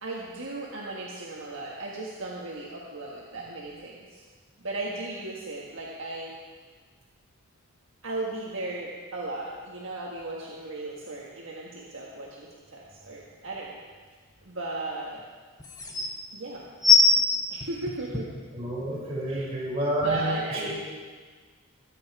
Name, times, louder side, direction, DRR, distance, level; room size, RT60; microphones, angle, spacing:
voice 1, 0.0-4.2 4.6-6.3 8.0-13.8 14.4-15.2 16.3-16.7 17.1-17.2 17.5-18.3 19.3-19.4 20.0-20.7, right 2 dB, 55° right, -3 dB, 1.7 m, -36 dB
sound 1, 13.5-13.6 15.2-15.3 15.6-16.1 16.8-18.4 19.1-19.2, left 5 dB, 15° left, 1.3 m, -21 dB
voice 2, 18.5-20.7, right 1 dB, 25° right, -7 dB, 5.5 m, -30 dB
23.5 x 9.1 x 4.9 m, 1.5 s
head